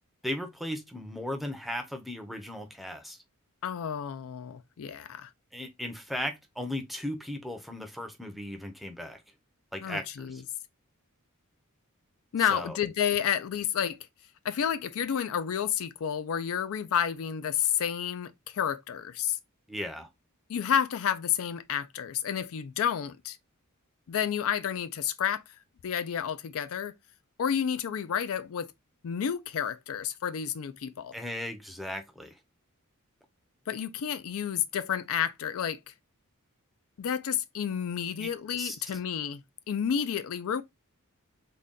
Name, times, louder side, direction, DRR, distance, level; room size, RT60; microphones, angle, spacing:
voice 1, 0.2-3.2 5.5-9.2 9.7-10.4 12.5-12.7 19.7-20.1 31.1-32.3 38.2-38.3 38.6-38.8, left 1 dB, ahead, 0.6 m, -36 dB
voice 2, 3.6-5.3 9.8-10.4 12.3-14.0 14.4-19.4 20.5-23.4 24.1-25.4 25.8-26.9 27.4-28.7 29.0-31.2 33.7-35.8 37.0-40.6, left 8 dB, 65° left, 0.4 m, -30 dB
3.8 x 2.2 x 3.6 m
head